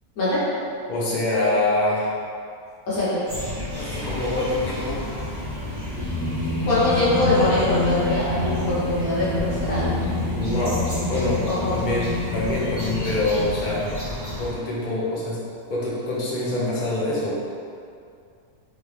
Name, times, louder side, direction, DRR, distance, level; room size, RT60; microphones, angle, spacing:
voice 1, 0.9-2.1 3.7-5.0 10.3-10.8 11.1-11.4 11.7-13.9 14.4-15.4 15.7-17.4, left 2 dB, 40° left, -6 dB, 0.7 m, -25 dB
voice 2, 2.9-3.2 6.6-10.0 11.5-11.9, left 1 dB, 70° left, -11 dB, 1.6 m, -23 dB
sound 1, 3.3-14.5, left 1 dB, 25° right, 1.0 m, -32 dB
Singing, 3.7-14.2, left 3 dB, 45° right, 1.2 m, -29 dB
3.3 x 2.9 x 3.3 m, 2.4 s
omnidirectional pair, 1.6 m